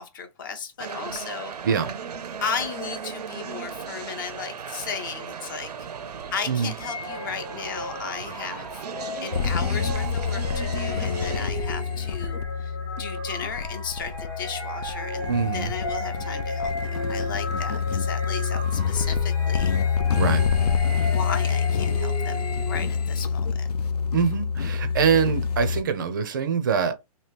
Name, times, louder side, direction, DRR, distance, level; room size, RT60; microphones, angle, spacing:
voice 1, 0.0-1.5 2.4-5.7 6.0-8.9 9.2-19.7 21.1-23.7, left 6 dB, 35° left, 0.5 m, -35 dB
sound 1, 0.8-11.5, right 7 dB, 90° right, 0.5 m, -37 dB
sound 2, 6.8-23.0, left 1 dB, 10° left, 0.8 m, -35 dB
sound 3, 9.3-25.8, left 6 dB, 85° left, 0.6 m, -27 dB
voice 2, 15.3-15.7 20.2-20.5 24.1-26.9, right 6 dB, 30° right, 0.4 m, -24 dB
2.9 x 2.7 x 3.3 m
hypercardioid pair, 160°, 20 cm